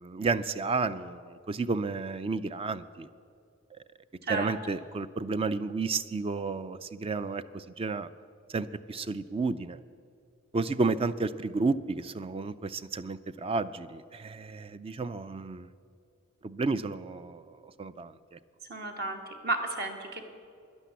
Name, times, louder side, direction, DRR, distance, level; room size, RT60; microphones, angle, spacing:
voice 1, 0.0-3.1 4.3-8.1 8.5-9.8 10.5-15.7 16.4-18.4, right 4 dB, 25° right, 14 dB, 0.4 m, -32 dB
voice 2, 18.7-20.2, right 2 dB, 50° right, 4 dB, 1.5 m, -33 dB
12.0 x 11.0 x 8.3 m, 2.4 s
head